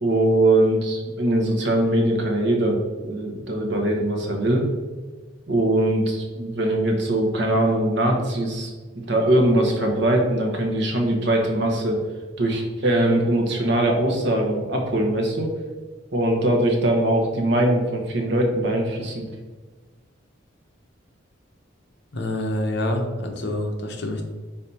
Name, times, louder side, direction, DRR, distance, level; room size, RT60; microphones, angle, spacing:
voice 1, 0.0-4.7 5.5-8.7 9.1-12.0 12.4-15.5 16.1-19.2, right 1 dB, 55° right, 1 dB, 1.2 m, -21 dB
voice 2, 22.1-24.2, left 1 dB, 55° left, 3 dB, 0.9 m, -26 dB
5.5 x 4.1 x 4.2 m, 1.3 s
head